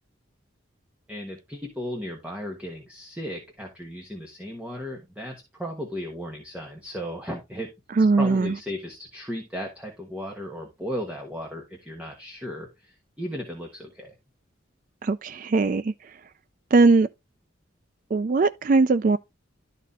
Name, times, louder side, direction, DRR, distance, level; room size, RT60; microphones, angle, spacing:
voice 1, 1.1-7.7 8.2-14.1, equal, 5° right, 1.3 m, -35 dB
voice 2, 8.0-8.5 15.0-15.9 16.7-17.1 18.1-19.2, right 3 dB, 40° right, 0.3 m, -20 dB
12.0 x 4.1 x 3.6 m
head